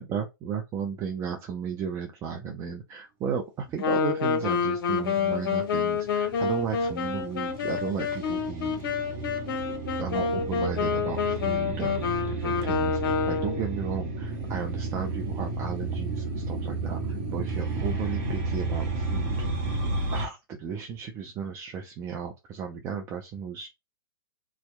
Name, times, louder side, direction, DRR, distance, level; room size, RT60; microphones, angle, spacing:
voice 1, 0.0-8.9 10.0-19.4 20.1-23.7, right 7 dB, 25° right, 0.4 m, -34 dB
Wind instrument woodwind instrument, 3.8-13.7, left 6 dB, 60° left, 0.8 m, -28 dB
sound 1, 5.5-20.3, right 3 dB, 40° right, 0.8 m, -32 dB
2.7 x 2.2 x 2.3 m
hypercardioid pair, 115°, 13 cm